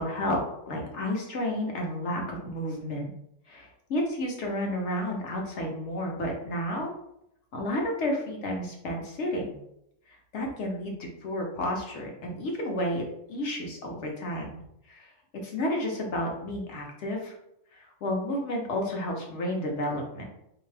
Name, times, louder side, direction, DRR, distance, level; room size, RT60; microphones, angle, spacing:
voice 1, 0.0-3.1 3.5-6.9 7.5-9.6 10.3-13.0 13.3-14.6 14.9-15.1 15.4-17.3 17.7-20.2, left 1 dB, 65° left, 1 dB, 1.1 m, -31 dB
3.5 x 2.8 x 3.3 m, 0.80 s
omnidirectional pair, 1.3 m